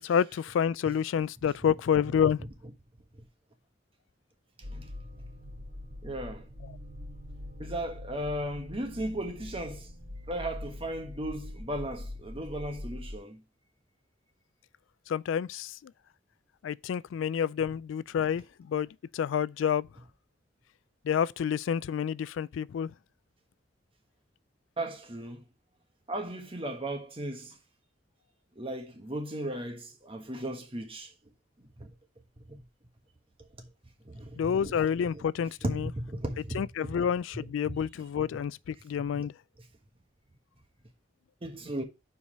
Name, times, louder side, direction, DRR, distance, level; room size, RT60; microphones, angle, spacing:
voice 1, 0.0-2.4 15.1-15.9 16.6-18.9 19.1-19.9 21.0-22.9 34.4-35.9 36.5-39.3, left 8 dB, 85° left, 0.3 m, -29 dB
voice 2, 2.0-2.5 3.1-3.3 4.7-5.3 6.0-6.5 7.6-9.9 10.3-13.4 24.8-25.4 26.1-27.6 28.5-31.1 31.6-31.9 32.4-32.6 33.4-33.7 34.0-35.2 35.6-37.1 37.3-37.8 38.3-38.4 39.1-39.3 41.4-41.8, right 1 dB, 30° right, 1.3 m, -37 dB
sound 1, 4.6-13.2, left 1 dB, 55° right, 2.9 m, -43 dB
5.3 x 4.8 x 6.2 m
head